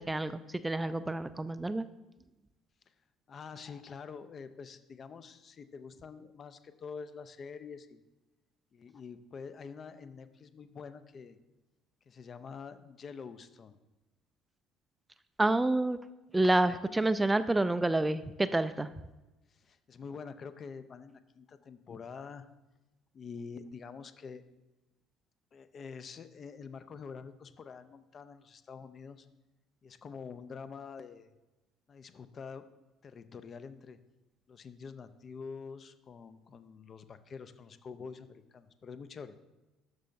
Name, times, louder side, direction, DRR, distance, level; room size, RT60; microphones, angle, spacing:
voice 1, 0.0-1.9 15.4-16.0 16.3-18.9, right 2 dB, 15° right, 13 dB, 0.3 m, -28 dB
voice 2, 3.3-8.0 8.7-11.4 12.1-13.8 19.5-22.5 23.1-24.4 25.5-29.3 29.8-31.3 31.9-32.6 33.0-34.0 34.5-39.3, left 5 dB, 40° left, 12 dB, 0.5 m, -46 dB
12.5 x 5.3 x 2.6 m, 1.1 s
figure-of-eight pair, 55°, 0 cm